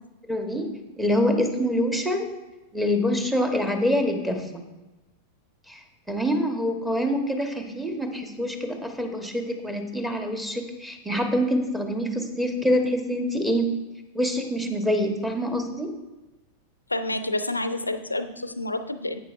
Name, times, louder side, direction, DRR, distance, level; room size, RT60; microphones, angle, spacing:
voice 1, 0.3-0.7 1.0-2.3 2.7-4.6 5.7-5.8 6.1-13.8 14.1-15.9, equal, 5° right, 4 dB, 1.2 m, -25 dB
voice 2, 16.9-19.2, left 2 dB, 85° left, 11 dB, 0.5 m, -29 dB
11.0 x 8.9 x 2.6 m, 1.1 s
figure-of-eight pair, 90°, 0 cm